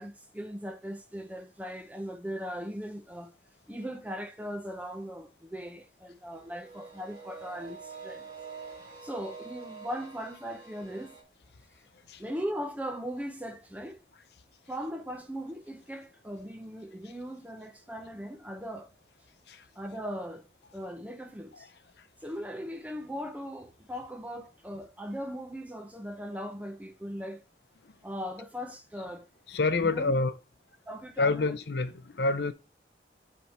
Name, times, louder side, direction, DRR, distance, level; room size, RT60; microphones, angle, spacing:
voice 1, 0.0-3.3 3.7-8.3 9.0-11.2 12.2-14.0 14.7-18.9 19.8-20.5 20.7-21.7 22.2-27.4 28.0-29.3 29.8-30.1 30.9-31.6, equal, 10° right, 0.7 m, -39 dB
sound 1, 6.5-11.2, right 5 dB, 25° right, 1.9 m, -46 dB
voice 2, 29.5-30.3 31.2-32.5, left 3 dB, 75° left, 0.7 m, -28 dB
8.2 x 3.6 x 4.2 m
head